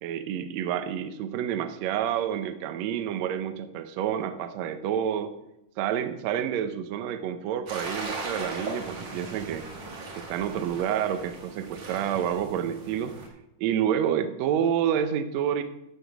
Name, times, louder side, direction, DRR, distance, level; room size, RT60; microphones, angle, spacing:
voice 1, 0.0-5.3 5.8-9.7 10.2-13.1 13.6-15.6, right 9 dB, 80° right, 9 dB, 1.6 m, -28 dB
sound 1, 7.7-13.3, right 2 dB, 50° right, 2.4 m, -38 dB
13.0 x 4.6 x 5.9 m, 0.86 s
omnidirectional pair, 3.8 m